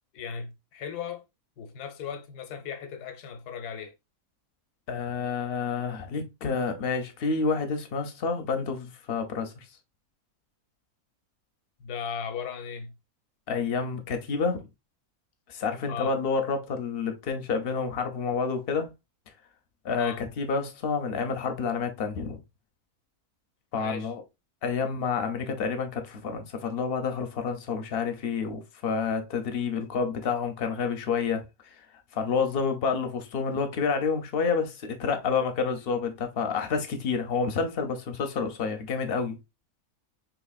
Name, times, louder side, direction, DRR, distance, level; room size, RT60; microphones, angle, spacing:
voice 1, 0.1-1.2 1.6-3.9 11.8-13.0 15.9-16.1 20.0-20.3 23.7-24.1, left 7 dB, 90° left, 1.2 m, -37 dB
voice 2, 4.9-9.5 13.5-14.7 15.5-18.9 19.8-22.4 23.7-24.2 24.6-31.4 32.1-39.4, left 5 dB, 60° left, 0.6 m, -29 dB
3.9 x 3.0 x 2.3 m
omnidirectional pair, 1.6 m